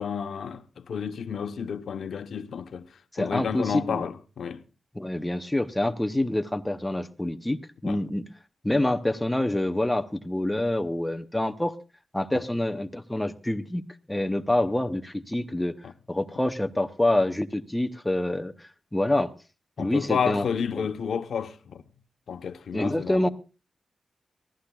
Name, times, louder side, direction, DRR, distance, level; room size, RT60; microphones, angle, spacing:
voice 1, 0.0-2.9 3.2-4.6 7.8-8.0 12.3-12.4 15.8-15.9 19.8-21.8 22.3-23.3, left 7 dB, 85° left, 0.8 m, -31 dB
voice 2, 3.1-4.0 5.0-8.3 8.6-11.7 12.1-13.8 14.1-15.7 16.1-19.3 19.8-20.5 22.7-23.3, left 1 dB, 10° left, 0.7 m, -26 dB
23.5 x 15.0 x 2.3 m
wide cardioid pair, 160°, 0 cm